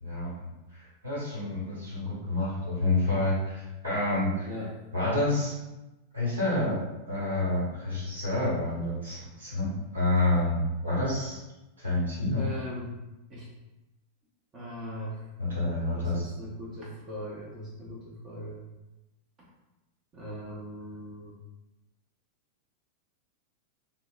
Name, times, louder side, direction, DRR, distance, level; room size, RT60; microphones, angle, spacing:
voice 1, 0.0-0.5 1.0-4.5 4.9-5.5 6.1-11.4 11.8-12.5 15.4-16.2, left 2 dB, 75° right, -7 dB, 1.2 m, -28 dB
voice 2, 4.4-4.7 12.4-12.9 13.3-13.5 14.5-15.2 15.9-18.6 20.1-21.4, equal, 25° right, -5 dB, 0.7 m, -39 dB
3.6 x 2.0 x 2.4 m, 1.0 s
figure-of-eight pair, 90°, 0 cm